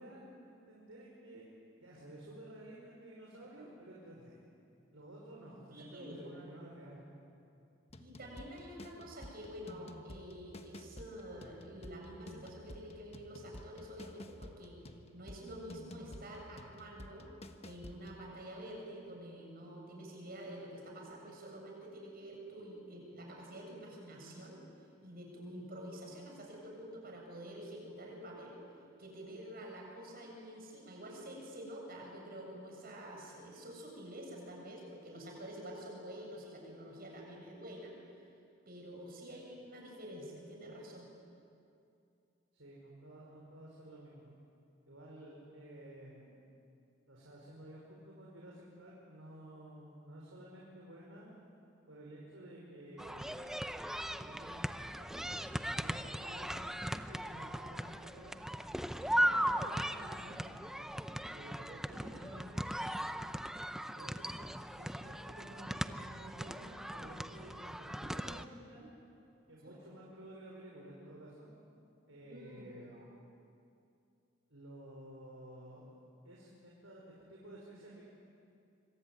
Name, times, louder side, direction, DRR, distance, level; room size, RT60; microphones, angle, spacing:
voice 1, 0.0-1.5 1.8-4.3 4.9-7.0 42.5-44.3 44.9-46.3 47.1-51.3 51.9-53.6 54.2-58.4 58.9-63.3 63.9-68.9 69.5-71.5 72.1-73.2 74.5-75.9 76.2-78.0, right 1 dB, 85° right, -4 dB, 5.3 m, -52 dB
voice 2, 5.7-6.2 8.0-14.8 15.1-17.3 17.6-24.6 25.0-28.6 29.0-37.9 38.7-41.1 59.1-59.2 69.6-69.9 72.2-72.7 72.9-73.0, equal, 50° right, 0 dB, 7.4 m, -48 dB
sound 1, 7.9-18.2, left 1 dB, 30° left, 1.3 m, -52 dB
School Recess, 53.0-68.4, equal, ahead, 0.7 m, -38 dB
26.0 x 24.0 x 9.1 m, 2.6 s
head